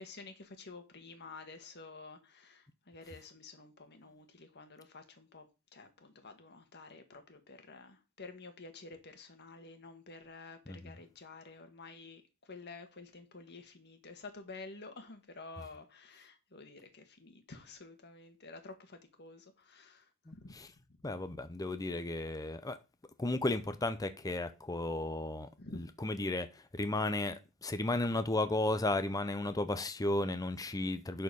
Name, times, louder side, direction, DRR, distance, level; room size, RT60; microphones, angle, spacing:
voice 1, 0.0-5.5 5.7-20.1 20.3-20.5 25.6-25.8, left 3 dB, 55° left, 1.7 m, -51 dB
voice 2, 21.0-22.8 23.2-26.5 26.7-31.2, left 2 dB, 15° left, 0.6 m, -34 dB
11.0 x 4.5 x 5.4 m
head